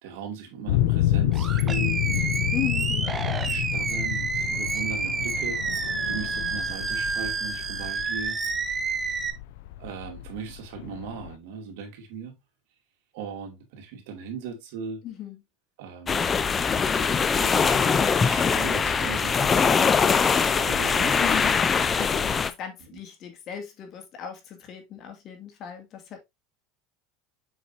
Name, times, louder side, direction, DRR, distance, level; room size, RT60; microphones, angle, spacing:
voice 1, 0.0-2.4 3.0-5.6 6.1-8.4 9.8-12.4 13.1-15.0 15.8-16.3 17.0-21.2, right 5 dB, 75° right, 2.3 m, -38 dB
sound 1, 0.7-11.3, left 13 dB, 80° left, 0.5 m, -29 dB
Animal, 1.3-9.3, right 4 dB, 20° right, 1.0 m, -29 dB
voice 2, 2.5-3.1 15.0-15.4 21.2-21.6 21.9-26.2, left 9 dB, 45° left, 2.3 m, -36 dB
sound 2, 16.1-22.5, left 5 dB, 25° left, 0.6 m, -22 dB
7.2 x 5.2 x 2.8 m
supercardioid pair, 115°, 0 cm